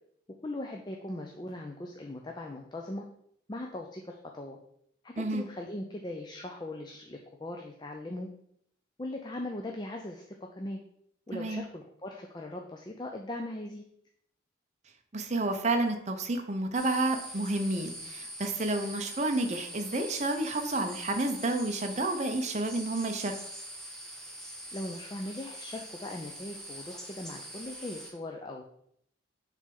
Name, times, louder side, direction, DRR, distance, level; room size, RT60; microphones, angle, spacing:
voice 1, 0.4-3.1 3.5-4.6 5.0-8.3 9.0-10.8 11.3-13.8 24.7-28.6, left 1 dB, 20° left, 2 dB, 0.4 m, -39 dB
voice 2, 11.3-11.6 15.1-23.3, right 2 dB, 35° right, 5 dB, 0.7 m, -30 dB
sound 1, 16.7-28.1, equal, 5° left, 0.8 m, -43 dB
6.4 x 3.4 x 5.2 m, 0.71 s
head